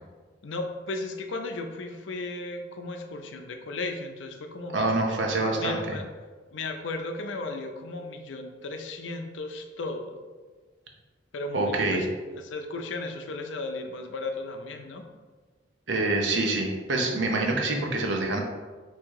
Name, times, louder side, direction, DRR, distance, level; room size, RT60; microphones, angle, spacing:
voice 1, 0.4-5.1 5.5-6.0 6.5-10.2 11.3-12.1 12.3-15.0, left 2 dB, 75° left, 5 dB, 0.5 m, -35 dB
voice 2, 4.7-5.8 11.5-12.0 15.9-18.4, right 2 dB, 70° right, 2 dB, 0.7 m, -26 dB
3.6 x 2.8 x 4.6 m, 1.4 s
head